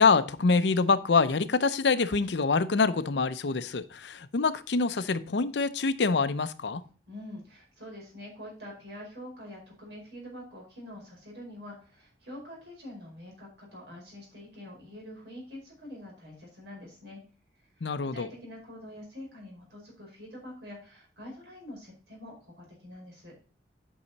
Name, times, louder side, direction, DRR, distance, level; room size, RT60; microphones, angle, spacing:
voice 1, 0.0-6.8 17.8-18.3, left 4 dB, 75° left, 13 dB, 0.6 m, -25 dB
voice 2, 7.1-17.2 17.7-23.3, left 1 dB, 75° right, -2 dB, 4.7 m, -45 dB
8.8 x 5.6 x 4.0 m, 0.37 s
head